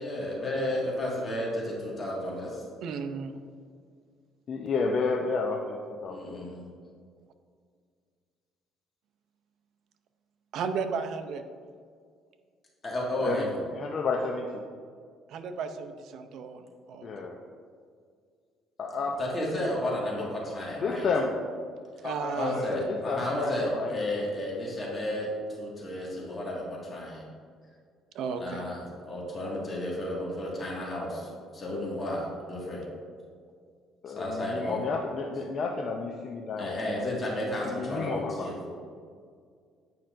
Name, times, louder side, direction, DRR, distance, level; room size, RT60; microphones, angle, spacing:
voice 1, 0.0-2.6 6.1-6.7 12.8-13.6 19.2-21.1 22.3-25.3 25.6-27.2 28.3-32.8 34.1-34.8 36.6-38.5, left 1 dB, 30° left, -4 dB, 1.8 m, -32 dB
voice 2, 2.8-3.4 10.5-11.4 15.3-17.3 22.0-22.7 28.1-28.7, right 5 dB, 65° right, 8 dB, 0.5 m, -34 dB
voice 3, 4.5-6.5 13.2-13.5 13.7-14.6 17.0-17.4 18.8-19.2 20.2-20.3 20.8-21.4 22.0-24.3 34.0-36.9 37.6-38.5, left 4 dB, 45° left, 1 dB, 0.5 m, -31 dB
9.3 x 5.6 x 2.5 m, 2.1 s
cardioid pair, 110°, 0 cm